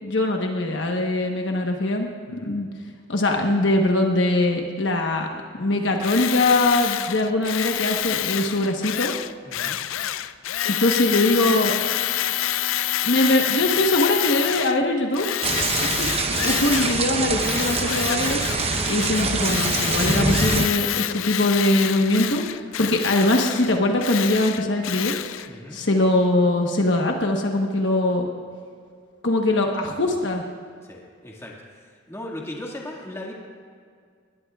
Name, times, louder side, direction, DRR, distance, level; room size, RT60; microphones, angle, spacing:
voice 1, 0.0-2.7 3.1-5.3 5.6-9.1 10.6-11.7 13.0-15.3 16.0-18.4 18.9-25.1 25.5-28.3 29.2-30.4, left 2 dB, 60° left, 2 dB, 1.1 m, -22 dB
Tools, 6.0-14.8 15.1-17.1 17.4-25.5, left 12 dB, 85° left, 0.4 m, -27 dB
voice 2, 9.4-9.8 25.5-25.8 30.9-31.5 31.8-33.3, left 1 dB, 15° left, -2 dB, 2.0 m, -37 dB
sound 1, 15.4-20.7, right 4 dB, 30° right, 0.7 m, -24 dB
21.0 x 19.5 x 2.4 m, 2.1 s
head